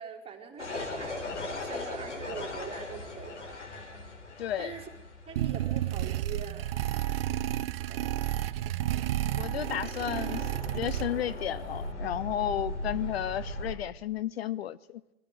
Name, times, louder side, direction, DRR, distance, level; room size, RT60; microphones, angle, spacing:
voice 1, 0.0-3.6 4.3-4.9 5.3-7.0 7.7-8.1, right 7 dB, 15° right, 3.7 m, -44 dB
sound 1, 0.6-13.7, left 2 dB, 75° left, 4.3 m, -40 dB
voice 2, 4.4-4.7 9.3-15.0, left 11 dB, 60° left, 0.6 m, -33 dB
sound 2, 5.4-11.4, right 13 dB, 55° right, 0.6 m, -31 dB
22.5 x 15.0 x 8.0 m
figure-of-eight pair, 95°, 36 cm